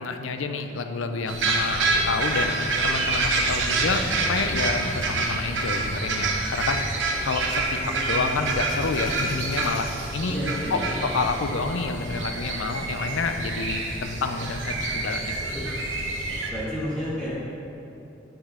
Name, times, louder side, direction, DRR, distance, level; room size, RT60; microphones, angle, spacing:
voice 1, 0.0-2.5 2.8-4.0 4.3-6.8 7.2-10.4 10.7-15.4, left 4 dB, 85° left, 7 dB, 0.5 m, -28 dB
sound 1, 1.3-16.5, right 3 dB, 75° right, 0.9 m, -27 dB
voice 2, 7.7-8.4 10.3-11.1 15.4-15.7 16.5-17.4, equal, 5° left, -10 dB, 1.7 m, -32 dB
8.8 x 5.1 x 3.7 m, 2.8 s
head